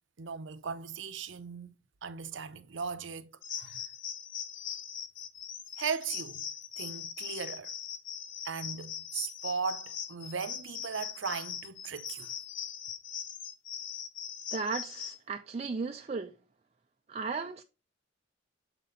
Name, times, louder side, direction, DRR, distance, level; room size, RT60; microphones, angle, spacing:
voice 1, 0.2-1.8 2.0-3.3 3.6-3.8 5.8-6.5 6.8-7.7 8.4-12.3, right 5 dB, 75° right, 0.7 m, -37 dB
sound 1, 3.4-15.2, left 8 dB, 80° left, 1.0 m, -40 dB
voice 2, 14.5-16.4 17.1-17.6, right 4 dB, 35° right, 0.4 m, -35 dB
7.4 x 4.2 x 3.8 m
head